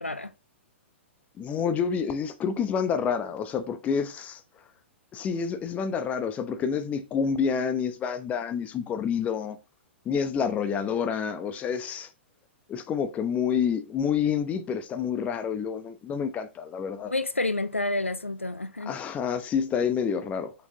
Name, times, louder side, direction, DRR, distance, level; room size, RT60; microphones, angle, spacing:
voice 1, 0.0-0.3 17.1-18.9, left 2 dB, 85° left, 0.6 m, -29 dB
voice 2, 1.4-4.4 5.1-9.6 10.0-12.1 12.7-17.1 18.9-20.5, left 7 dB, 20° left, 0.9 m, -28 dB
7.0 x 6.4 x 2.9 m
figure-of-eight pair, 110°, 7 cm